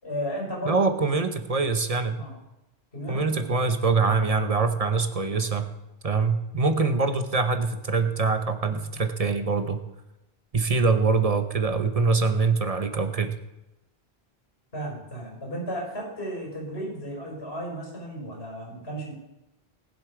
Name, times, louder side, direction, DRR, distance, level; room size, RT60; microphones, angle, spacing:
voice 1, 0.0-0.9 2.1-2.3 2.9-3.7 14.7-19.1, equal, 85° left, -3 dB, 5.6 m, -34 dB
voice 2, 0.6-2.2 3.1-5.7 6.0-9.8 10.5-13.4, right 4 dB, 40° right, 8 dB, 0.9 m, -24 dB
19.5 x 7.7 x 4.9 m, 0.94 s
omnidirectional pair, 1.0 m